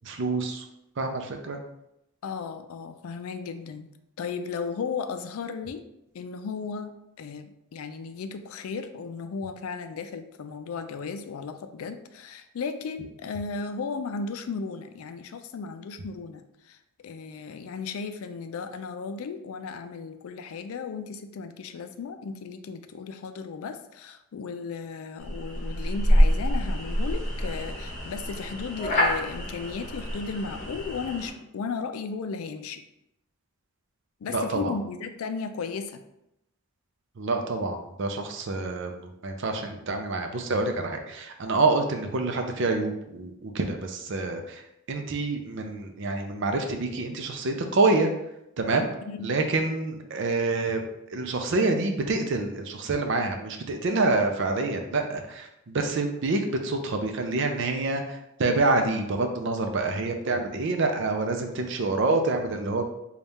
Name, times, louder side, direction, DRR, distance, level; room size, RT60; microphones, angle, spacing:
voice 1, 0.0-0.6 1.0-1.6 34.3-34.7 37.2-39.0 39.2-44.6 44.9-48.1 48.6-48.9 49.2-50.8 51.1-62.8, right 3 dB, 60° right, 4 dB, 0.5 m, -27 dB
voice 2, 2.2-3.9 4.2-5.9 6.1-16.8 17.0-32.8 34.2-36.0 49.0-49.3, left 5 dB, 80° left, 9 dB, 0.4 m, -35 dB
sound 1, 25.2-31.3, equal, 35° left, 0.9 m, -26 dB
4.0 x 2.3 x 3.5 m, 0.83 s
head